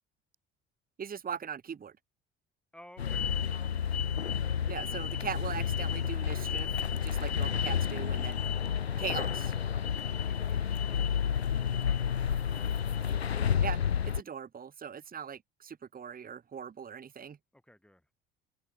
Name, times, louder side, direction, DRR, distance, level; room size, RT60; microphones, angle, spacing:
voice 1, 1.0-1.9 4.7-8.4 9.0-9.5 13.6-13.8 14.0-17.4, right 7 dB, 30° right, 1.6 m, -40 dB
voice 2, 2.7-3.3 9.7-12.7 17.5-18.0, left 1 dB, 5° left, 6.1 m, -57 dB
sound 1, 3.0-14.2, left 8 dB, 90° left, 0.6 m, -30 dB
sound 2, 6.0-7.0 8.0-8.2 8.8-9.0 9.5-9.7 10.9-11.7 12.9-13.8, right 4 dB, 90° right, 2.0 m, -59 dB
figure-of-eight pair, 55°, 31 cm